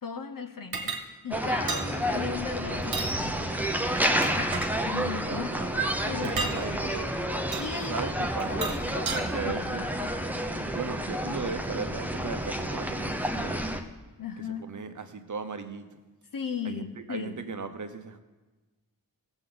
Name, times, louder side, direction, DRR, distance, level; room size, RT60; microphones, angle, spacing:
voice 1, 0.0-3.6 4.4-6.7 7.6-8.1 8.5-8.7 8.9-9.1 9.5-9.7 11.3-11.5 14.2-14.6 16.3-17.4, left 6 dB, 60° left, 8 dB, 0.9 m, -37 dB
sound 1, 0.7-1.0 1.7-1.9 2.8-3.1 3.8-4.7 6.2-6.6 7.5-7.7 8.4-9.2, right 4 dB, 75° right, 1.2 m, -33 dB
sound 2, 1.3-13.8, right 1 dB, 5° right, 0.7 m, -30 dB
voice 2, 5.2-7.2 7.8-8.8 9.1-9.8 10.7-13.7 14.6-15.8 16.6-18.2, right 5 dB, 55° right, 8 dB, 0.8 m, -37 dB
17.0 x 8.0 x 3.9 m, 1.2 s
wide cardioid pair, 100°, 37 cm